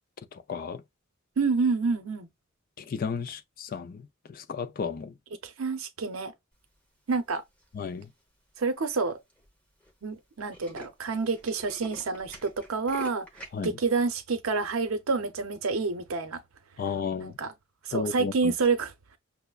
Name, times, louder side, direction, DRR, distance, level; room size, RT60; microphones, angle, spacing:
voice 1, 0.3-0.8 2.8-5.1 7.7-8.1 13.5-13.7 16.8-17.3 17.9-18.5, left 5 dB, 45° left, 0.3 m, -33 dB
voice 2, 1.4-2.3 5.4-6.3 7.1-7.4 8.6-9.2 10.0-13.3 13.6-16.4 17.2-17.5 17.8-19.2, right 4 dB, 90° right, 0.7 m, -28 dB
Tools, 7.6-8.0 8.6-8.7 9.0-9.1 9.3-9.5 9.8-9.9 10.2-13.7, equal, 5° left, 0.9 m, -46 dB
5.8 x 2.1 x 2.3 m
head